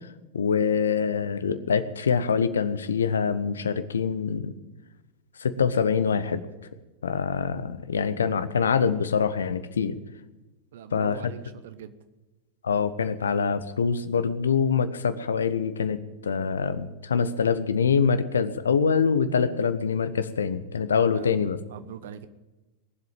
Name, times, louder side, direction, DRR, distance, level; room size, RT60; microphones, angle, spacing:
voice 1, 0.3-4.5 5.4-6.4 7.0-10.0 10.9-11.3 12.6-16.0 16.2-21.6, left 6 dB, 70° left, 13 dB, 0.9 m, -25 dB
voice 2, 10.7-11.9 21.1-21.4 21.7-22.3, right 9 dB, 60° right, 12 dB, 1.0 m, -41 dB
20.0 x 7.8 x 9.0 m, 1.1 s
figure-of-eight pair, 90°, 0 cm